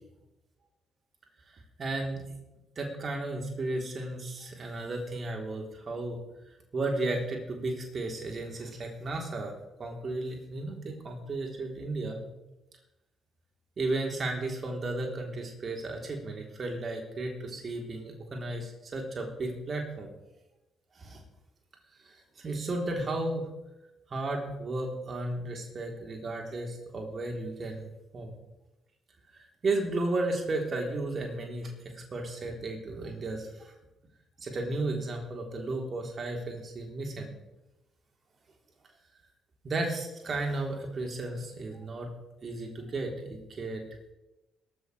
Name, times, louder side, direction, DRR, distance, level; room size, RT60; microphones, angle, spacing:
voice 1, 1.8-2.3 2.7-6.2 6.7-9.5 9.8-12.2 13.8-20.2 20.9-21.2 22.0-23.5 24.1-28.3 29.6-33.7 34.4-37.4 39.6-42.1 42.4-43.8, right 2 dB, 40° right, 1 dB, 3.4 m, -34 dB
21.0 x 14.0 x 3.3 m, 0.96 s
figure-of-eight pair, 40°, 0 cm